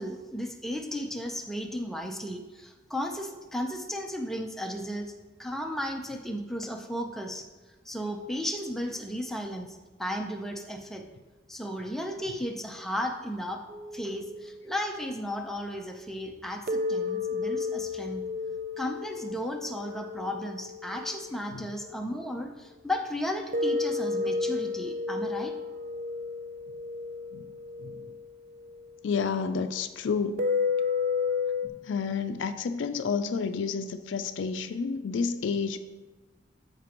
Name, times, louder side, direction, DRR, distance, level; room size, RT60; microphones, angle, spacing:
voice 1, 0.0-5.1 5.4-7.4 7.9-11.0 11.5-13.6 13.9-18.3 18.8-25.5, equal, ahead, 2 dB, 0.6 m, -34 dB
sound 1, 13.7-15.2 16.7-22.1 23.5-29.0 30.4-31.7, left 4 dB, 45° right, 0.4 m, -32 dB
voice 2, 29.0-30.4 31.6-35.8, left 5 dB, 75° left, 9 dB, 0.4 m, -30 dB
13.5 x 5.1 x 3.0 m, 1.2 s
head